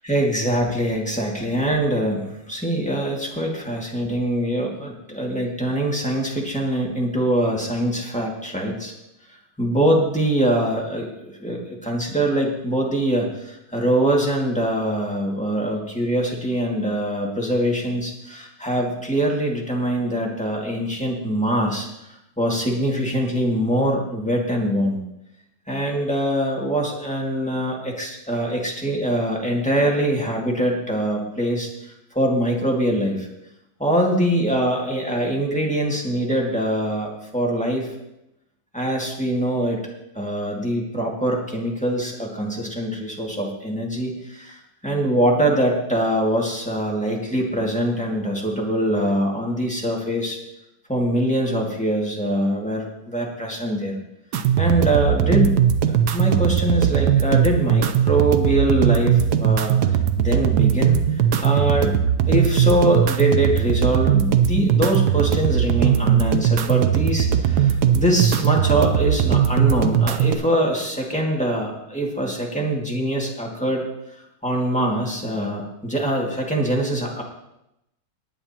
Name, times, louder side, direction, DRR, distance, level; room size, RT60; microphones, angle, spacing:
voice 1, 0.0-8.9 9.6-25.0 25.7-33.3 33.8-37.9 38.7-39.8 40.1-50.4 50.9-54.0 54.6-62.0 62.3-73.9 74.2-77.2, right 1 dB, 5° left, -2 dB, 1.8 m, -23 dB
sound 1, 54.3-70.3, right 9 dB, 65° right, 1.0 m, -19 dB
19.0 x 9.7 x 2.9 m, 0.86 s
omnidirectional pair, 2.2 m